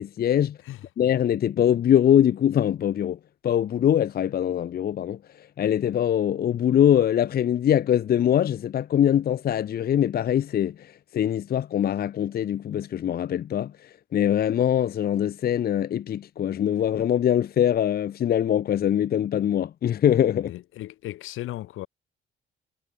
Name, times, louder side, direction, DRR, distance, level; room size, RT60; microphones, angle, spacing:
voice 1, 0.0-0.6 1.0-3.2 3.4-5.2 5.6-20.5, left 10 dB, 50° left, 0.6 m, -23 dB
voice 2, 20.3-21.9, left 15 dB, 85° left, 2.4 m, -36 dB
cardioid pair, 90°, 20 cm